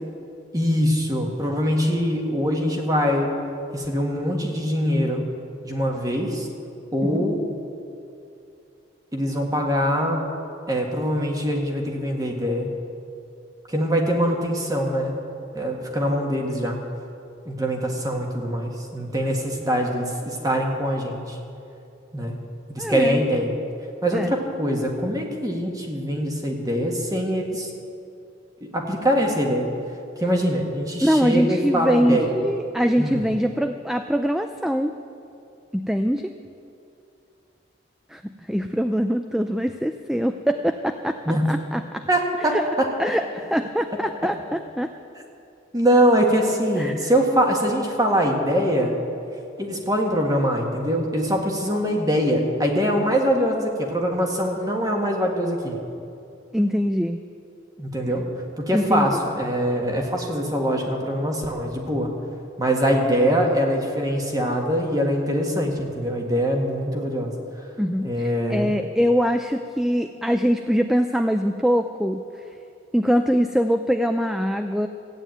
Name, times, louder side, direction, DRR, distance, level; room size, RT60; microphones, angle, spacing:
voice 1, 0.5-3.3 3.7-5.2 5.6-6.5 6.9-7.4 9.1-10.2 10.7-12.7 13.7-15.2 15.5-16.8 17.5-21.4 22.1-22.4 22.7-23.5 24.0-27.7 28.6-29.7 30.2-32.3 33.0-33.2 41.3-41.4 42.1-42.9 45.7-48.9 49.6-55.8 57.8-58.2 58.6-62.1 62.6-67.3 68.0-68.8, equal, 20° right, 1 dB, 1.7 m, -23 dB
voice 2, 22.8-23.2 24.1-24.3 31.0-34.9 35.7-36.3 38.1-41.2 41.5-42.1 42.4-42.7 43.0-44.9 46.8-47.1 56.5-57.2 58.7-59.1 67.8-72.2 72.9-74.9, equal, ahead, 7 dB, 0.3 m, -23 dB
14.5 x 9.2 x 9.1 m, 2.6 s
head